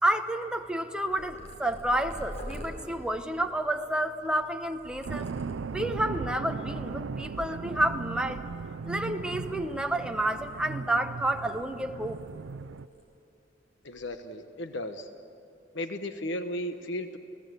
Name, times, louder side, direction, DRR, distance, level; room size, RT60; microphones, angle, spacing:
voice 1, 0.0-5.3 5.7-8.4 8.8-12.2, right 1 dB, 5° right, 5 dB, 1.0 m, -30 dB
Purr, 1.1-5.9 6.5-7.0 7.2-8.4 8.8-10.9 11.2-12.5 12.8-13.1 13.7-14.1, equal, 35° left, 4.4 m, -46 dB
sound 1, 5.0-12.9, right 4 dB, 75° right, 0.5 m, -37 dB
voice 2, 13.8-15.1 15.7-17.2, left 1 dB, 70° left, 8 dB, 1.1 m, -35 dB
29.5 x 18.5 x 7.9 m, 2.6 s
head